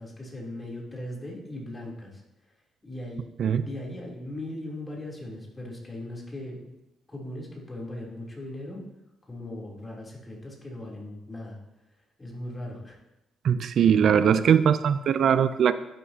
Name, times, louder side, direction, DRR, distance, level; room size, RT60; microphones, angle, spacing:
voice 1, 0.0-2.2 2.8-3.2 3.6-6.6 7.1-8.8 9.3-11.6 12.2-13.0, left 1 dB, 20° left, -3 dB, 3.2 m, -38 dB
voice 2, 13.4-15.7, right 8 dB, 65° right, 13 dB, 0.4 m, -21 dB
11.0 x 10.0 x 2.8 m, 0.94 s
cardioid pair, 90°, 0 cm